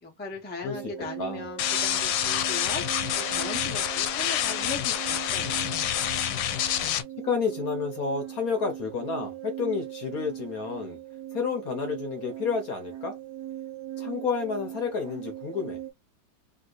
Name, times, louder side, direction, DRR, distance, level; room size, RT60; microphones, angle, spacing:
voice 1, 0.0-5.7, left 4 dB, 10° left, 0.6 m, -39 dB
sound 1, 0.7-15.9, right 12 dB, 60° right, 1.2 m, -40 dB
sound 2, 1.6-7.0, left 10 dB, 80° left, 1.3 m, -27 dB
voice 2, 7.2-11.0 11.3-13.2 14.0-15.8, left 5 dB, 60° left, 1.2 m, -30 dB
3.4 x 2.8 x 2.4 m
omnidirectional pair, 2.0 m